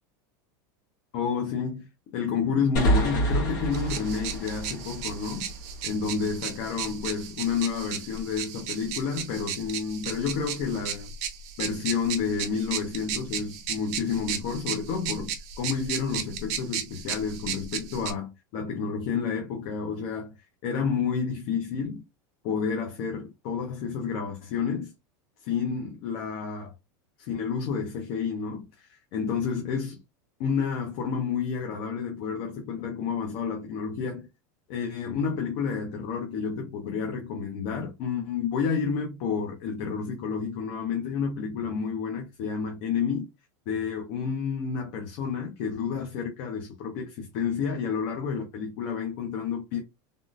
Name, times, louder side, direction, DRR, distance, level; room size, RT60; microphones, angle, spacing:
voice 1, 1.1-5.5 5.8-11.1 11.6-20.3 20.6-22.0 22.4-24.9 25.4-26.7 27.2-30.0 30.4-34.3 34.7-43.3 43.7-49.8, left 6 dB, 40° left, 0.6 m, -30 dB
sound 1, 2.8-6.2, right 1 dB, 65° left, 1.6 m, -28 dB
sound 2, 3.7-18.1, right 8 dB, 45° right, 0.6 m, -35 dB
3.5 x 2.4 x 2.5 m
supercardioid pair, 180°, 11 cm